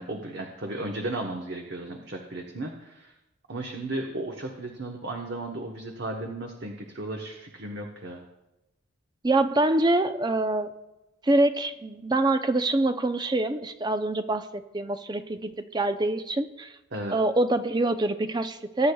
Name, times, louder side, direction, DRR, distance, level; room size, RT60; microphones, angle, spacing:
voice 1, 0.0-3.1 3.5-8.2 16.9-17.2, right 2 dB, 55° right, 1 dB, 1.1 m, -35 dB
voice 2, 9.2-10.7 11.2-16.7 17.1-18.9, right 2 dB, 20° right, 9 dB, 0.5 m, -25 dB
21.0 x 9.9 x 2.3 m, 0.99 s
head